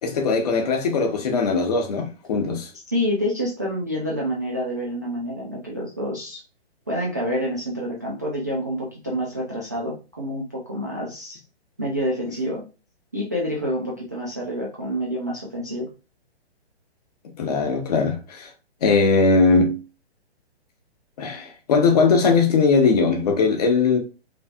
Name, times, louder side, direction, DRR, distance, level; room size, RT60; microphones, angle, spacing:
voice 1, 0.0-2.7 17.4-18.5 18.8-19.8 21.2-24.0, left 4 dB, 35° left, 1.0 m, -20 dB
voice 2, 2.9-6.4 6.9-11.4 11.8-12.6 13.1-15.9, equal, 15° right, 0.4 m, -27 dB
4.4 x 3.1 x 2.4 m
hypercardioid pair, 165°, 33 cm